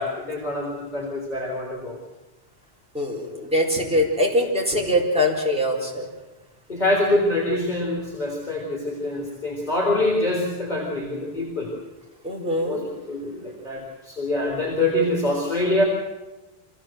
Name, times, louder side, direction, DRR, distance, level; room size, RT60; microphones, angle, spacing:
voice 1, 0.0-2.0 6.7-11.7 12.6-15.8, left 1 dB, 45° left, -2 dB, 4.3 m, -25 dB
voice 2, 2.9-6.1 12.2-12.8, left 1 dB, 5° right, -3 dB, 4.9 m, -23 dB
26.0 x 16.5 x 7.8 m, 1.1 s
omnidirectional pair, 1.0 m